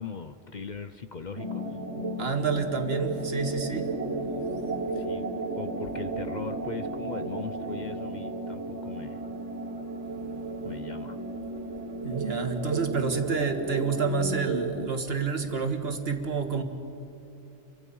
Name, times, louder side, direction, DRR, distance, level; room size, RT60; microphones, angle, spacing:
voice 1, 0.0-1.8 4.9-5.3 5.6-9.2 10.6-11.2, left 5 dB, 45° left, 9 dB, 0.8 m, -39 dB
sound 1, 1.4-14.9, right 2 dB, 75° right, 1.8 m, -34 dB
voice 2, 2.2-3.9 12.0-16.6, right 5 dB, 60° right, 6 dB, 1.9 m, -29 dB
Organ, 3.3-13.5, right 1 dB, 30° right, 0.4 m, -40 dB
30.0 x 24.5 x 5.6 m, 2.8 s
omnidirectional pair, 1.2 m